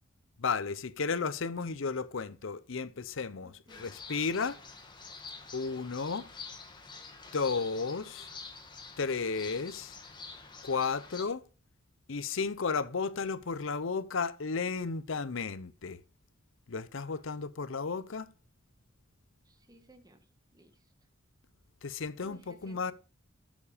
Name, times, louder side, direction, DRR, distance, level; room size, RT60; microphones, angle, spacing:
voice 1, 0.4-3.5 3.8-4.6 5.5-6.3 7.3-8.3 9.0-10.0 10.6-11.4 12.1-16.0 16.7-18.3 21.8-22.9, left 5 dB, 70° left, 0.7 m, -33 dB
voice 2, 3.4-3.9 17.0-17.2 19.4-20.9 22.2-22.9, right 1 dB, 20° right, 1.6 m, -58 dB
sound 1, 3.7-11.2, left 4 dB, 20° left, 2.0 m, -47 dB
13.5 x 7.3 x 5.0 m
head